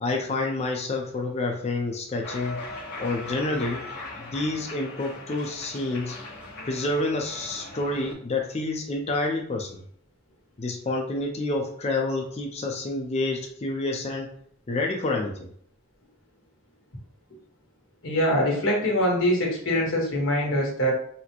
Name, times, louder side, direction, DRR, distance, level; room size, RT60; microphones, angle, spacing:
voice 1, 0.0-2.6 3.0-3.8 4.2-6.2 6.7-9.8 10.6-14.3 14.7-15.5, left 2 dB, 35° left, 1 dB, 0.4 m, -28 dB
Cheering, 2.2-8.1, left 2 dB, 60° left, 1.0 m, -39 dB
voice 2, 18.0-20.9, equal, 80° left, -2 dB, 1.2 m, -23 dB
4.0 x 2.1 x 2.9 m, 0.62 s
head